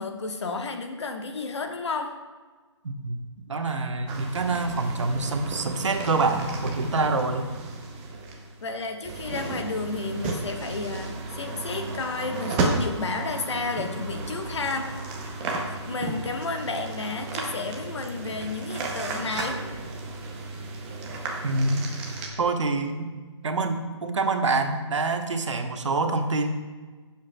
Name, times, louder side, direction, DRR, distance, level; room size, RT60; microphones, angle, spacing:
voice 1, 0.0-2.1 8.6-14.9 15.2-15.6 15.8-19.6, left 3 dB, 65° left, 4 dB, 1.2 m, -32 dB
voice 2, 2.8-3.2 3.5-7.5 16.1-16.2 21.4-21.8 22.4-23.1 23.4-26.5, right 3 dB, 80° right, 6 dB, 1.1 m, -26 dB
sound 1, 4.1-22.3, right 3 dB, 10° right, 0.6 m, -33 dB
16.0 x 7.3 x 2.2 m, 1.4 s
hypercardioid pair, 165°, 16 cm